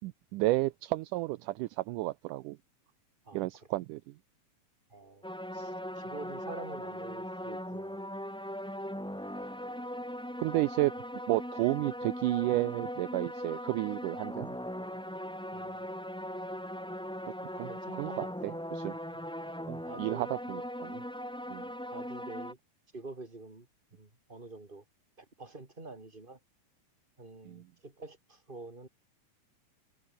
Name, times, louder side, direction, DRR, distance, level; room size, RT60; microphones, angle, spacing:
voice 1, 0.0-2.6 3.3-4.0 10.4-10.9 11.3-14.6 17.5-17.7 18.0-19.0 19.7-21.0 21.5-21.7 27.5-27.6, right 19 dB, 80° right, 2.1 m, -32 dB
voice 2, 3.3-3.8 4.9-5.3 5.5-8.1 15.5-15.9 17.7-18.6 19.9-20.3 21.9-22.6 22.9-23.7 23.9-24.8 25.2-26.4 27.2-28.9, right 3 dB, 15° right, 4.0 m, -47 dB
sound 1, 5.2-22.5, equal, 5° left, 0.9 m, -39 dB
omnidirectional pair, 3.9 m